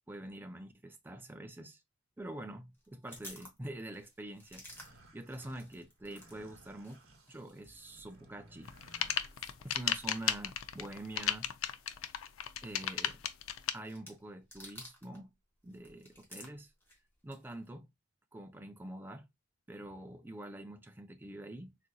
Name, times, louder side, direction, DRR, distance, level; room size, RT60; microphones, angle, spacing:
voice 1, 0.1-1.8 2.2-7.0 7.3-8.8 9.6-11.5 12.6-13.2 13.7-15.3 15.6-16.7 17.2-17.9 18.3-19.3 19.7-21.8, right 1 dB, 10° right, 0.4 m, -46 dB
sound 1, 2.7-6.4 6.6-15.3 15.6-17.7, left 1 dB, 10° left, 1.0 m, -56 dB
sound 2, 4.6-10.2, right 2 dB, 75° right, 1.0 m, -60 dB
sound 3, 8.6-13.7, left 10 dB, 70° left, 0.4 m, -34 dB
4.0 x 2.5 x 2.2 m
head